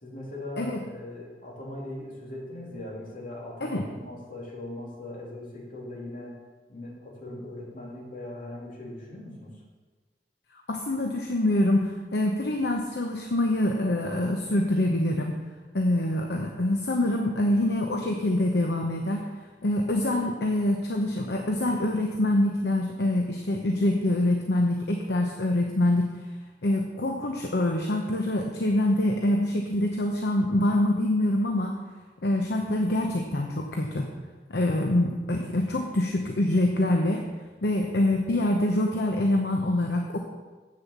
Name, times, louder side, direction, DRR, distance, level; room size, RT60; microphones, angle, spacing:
voice 1, 0.0-6.4 6.7-9.5, left 1 dB, 50° left, -3 dB, 2.9 m, -40 dB
voice 2, 10.7-15.3 15.7-19.3 19.6-26.1 26.6-31.8 32.2-34.1 34.5-37.2 37.6-40.2, left 1 dB, 65° left, 2 dB, 0.9 m, -25 dB
7.9 x 6.8 x 7.2 m, 1.3 s
head